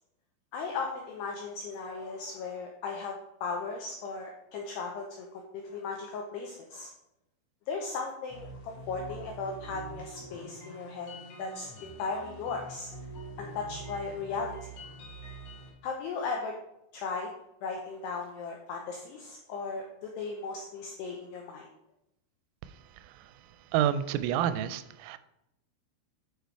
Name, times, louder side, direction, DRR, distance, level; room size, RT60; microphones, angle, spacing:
voice 1, 0.5-6.9 7.7-11.1 11.4-12.9 13.4-14.6 15.8-16.5 16.9-17.3 17.6-21.7, left 4 dB, 90° left, 1 dB, 2.4 m, -36 dB
sound 1, 8.3-15.7, right 2 dB, 50° left, 3.1 m, -45 dB
voice 2, 23.7-25.2, right 10 dB, 90° right, 13 dB, 3.2 m, -28 dB
9.1 x 4.9 x 4.6 m, 0.83 s
omnidirectional pair, 5.8 m